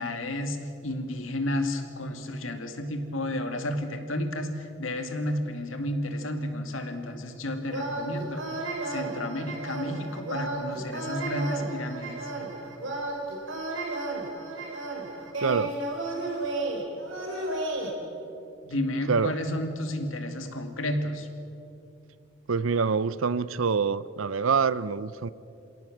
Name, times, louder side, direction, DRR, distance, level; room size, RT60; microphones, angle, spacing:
voice 1, 0.0-8.4 8.8-12.2 18.6-21.3, left 1 dB, 80° left, 6 dB, 2.4 m, -31 dB
sound 1, 7.7-17.9, right 2 dB, 75° right, 3.8 m, -33 dB
voice 2, 15.4-15.7 19.1-19.3 22.5-25.3, right 5 dB, 90° right, 17 dB, 0.7 m, -25 dB
27.5 x 17.5 x 7.4 m, 2.7 s
head